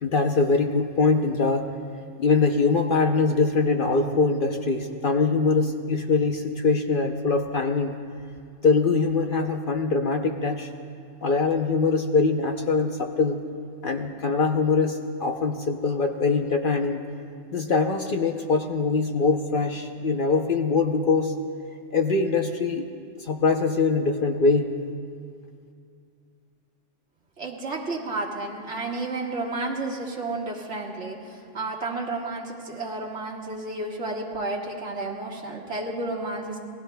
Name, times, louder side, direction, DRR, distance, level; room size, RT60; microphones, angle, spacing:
voice 1, 0.0-1.7 2.2-8.0 8.6-10.7 11.2-13.4 13.8-17.0 17.5-21.3 21.9-22.9 23.2-24.7, left 4 dB, 50° left, 4 dB, 0.7 m, -23 dB
voice 2, 27.4-36.6, right 2 dB, 65° right, -2 dB, 2.0 m, -31 dB
27.5 x 19.5 x 2.2 m, 2.4 s
omnidirectional pair, 1.3 m